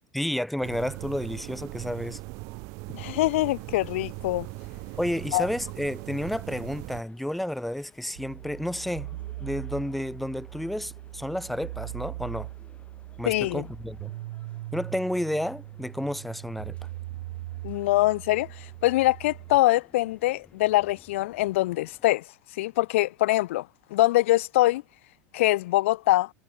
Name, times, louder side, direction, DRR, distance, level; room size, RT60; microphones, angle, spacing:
voice 1, 0.1-2.2 5.0-12.5 13.2-14.1 14.7-16.8, left 1 dB, ahead, 0.6 m, -31 dB
sound 1, 0.6-7.0, right 29 dB, 55° right, 1.7 m, -39 dB
voice 2, 2.9-4.5 5.3-5.5 13.3-13.6 17.6-18.5 18.8-22.2 22.6-23.7 23.9-24.8 25.3-26.3, left 17 dB, 85° left, 0.4 m, -23 dB
sound 2, 3.1-22.0, left 5 dB, 20° left, 5.5 m, -57 dB
sound 3, 8.2-19.6, right 17 dB, 80° right, 2.0 m, -40 dB
supercardioid pair, 145°, 7 cm